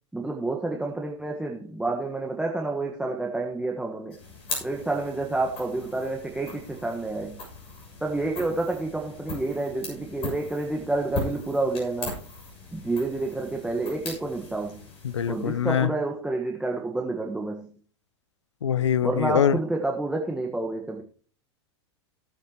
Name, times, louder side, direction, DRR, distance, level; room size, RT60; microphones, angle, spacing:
voice 1, 0.1-4.2 4.6-7.4 8.0-12.2 12.7-14.8 15.3-17.7 19.0-21.0, right 2 dB, 5° right, 1.4 m, -29 dB
sound 1, 4.1-15.8, left 3 dB, 40° left, 6.8 m, -39 dB
voice 2, 15.0-15.9 18.6-19.6, left 8 dB, 85° left, 0.5 m, -23 dB
18.0 x 8.1 x 3.0 m
hypercardioid pair, 95°, 15 cm